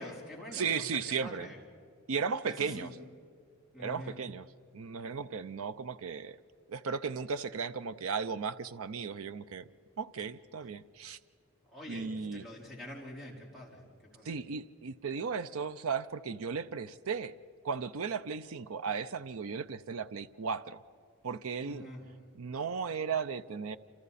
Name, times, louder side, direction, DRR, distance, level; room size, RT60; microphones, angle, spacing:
voice 1, 0.0-1.6 2.5-2.9 3.7-4.2 11.7-13.8 14.1-14.3 21.6-22.1, left 1 dB, ahead, -4 dB, 4.0 m, -45 dB
voice 2, 0.5-1.5 2.1-2.9 3.8-4.5 4.7-6.4 6.7-9.7 10.0-11.2 11.9-12.5 14.2-17.3 17.6-20.8 21.2-21.9 22.3-23.8, right 5 dB, 70° right, 12 dB, 0.5 m, -35 dB
28.0 x 27.5 x 4.2 m, 2.3 s
head